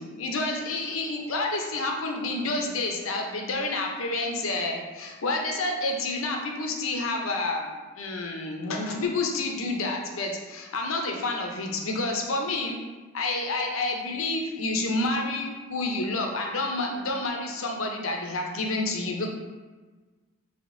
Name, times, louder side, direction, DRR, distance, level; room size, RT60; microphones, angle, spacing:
voice 1, 0.0-7.7 8.0-12.8 13.1-19.3, left 2 dB, 85° left, 2 dB, 0.6 m, -29 dB
5.0 x 2.8 x 2.6 m, 1.3 s
head